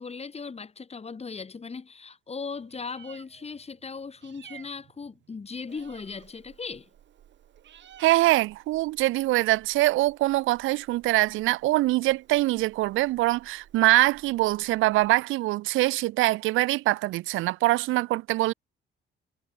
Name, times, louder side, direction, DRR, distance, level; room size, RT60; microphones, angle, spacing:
voice 1, 0.0-6.9, left 5 dB, 30° left, 2.8 m, -38 dB
Meow, 2.5-15.1, right 10 dB, 65° right, 5.5 m, -54 dB
voice 2, 8.0-18.5, right 18 dB, 90° right, 0.6 m, -23 dB
cardioid pair, 90°, 20 cm